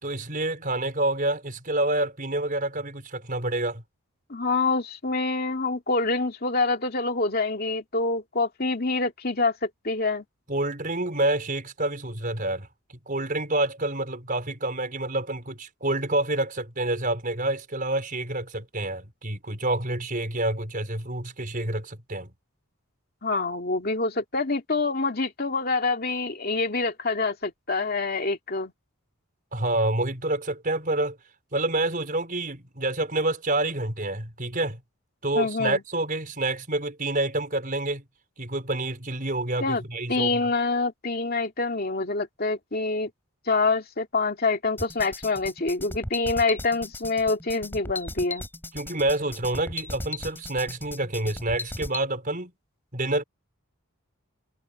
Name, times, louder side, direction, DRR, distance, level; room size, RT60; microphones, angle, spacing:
voice 1, 0.0-3.8 10.5-12.7 13.1-22.3 29.5-31.2 31.5-34.8 35.2-38.0 38.4-40.5 48.7-52.5 52.9-53.2, right 2 dB, 40° right, 5.1 m, -28 dB
voice 2, 4.3-10.2 23.2-28.7 35.3-35.8 39.6-39.8 40.1-43.1 43.5-48.4, left 3 dB, 45° left, 2.6 m, -26 dB
sound 1, 44.8-52.0, left 2 dB, 10° left, 7.2 m, -36 dB
head